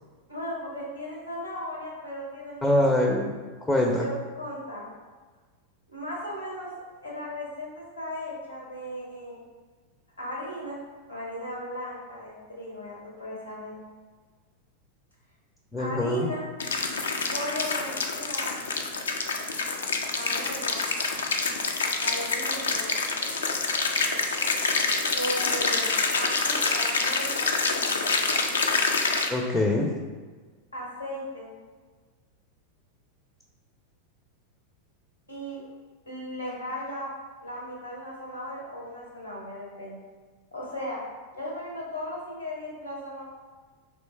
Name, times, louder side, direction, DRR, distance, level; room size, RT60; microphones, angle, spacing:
voice 1, 0.3-2.8 4.0-4.9 5.9-6.7 7.0-9.4 10.2-10.8 11.1-13.7 15.8-16.5 17.3-18.5 20.1-20.8 22.0-22.9 25.1-28.0 30.7-31.5 35.3-35.6 36.1-37.1 37.4-40.0 40.5-41.0 41.3-43.2, equal, 85° left, -4 dB, 1.3 m, -36 dB
voice 2, 2.6-3.4 3.6-4.1 15.7-16.3 29.3-29.9, left 1 dB, 10° left, 0 dB, 0.5 m, -24 dB
sound 1, 16.6-29.3, left 4 dB, 70° left, 0.4 m, -27 dB
3.1 x 3.0 x 4.3 m, 1.4 s
figure-of-eight pair, 90°, 0 cm